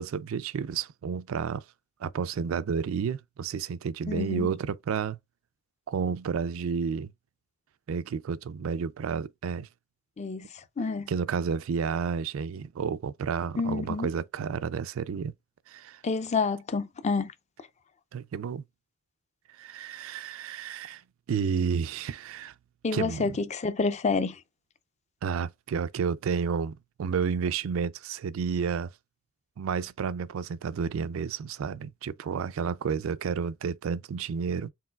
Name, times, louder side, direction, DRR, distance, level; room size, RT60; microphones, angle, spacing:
voice 1, 0.0-1.6 2.0-5.2 5.9-7.1 7.9-9.7 11.1-15.3 15.7-16.0 18.1-18.6 19.6-21.0 21.3-22.5 22.9-23.3 25.2-28.9 29.6-34.7, right 6 dB, 80° right, 0.4 m, -31 dB
voice 2, 4.1-4.5 10.2-10.5 10.8-11.1 13.6-14.1 16.0-17.3 22.8-24.4, left 4 dB, 35° left, 0.5 m, -28 dB
4.6 x 3.8 x 2.3 m
head